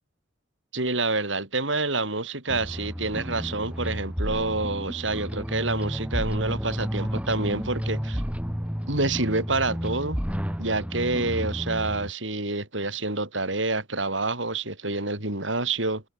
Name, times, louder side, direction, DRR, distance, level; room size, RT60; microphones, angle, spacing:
voice 1, 0.7-8.2 8.9-10.2 10.6-16.0, right 3 dB, 70° right, 6.8 m, -28 dB
sound 1, 2.5-12.1, equal, 5° right, 1.8 m, -31 dB
open air
head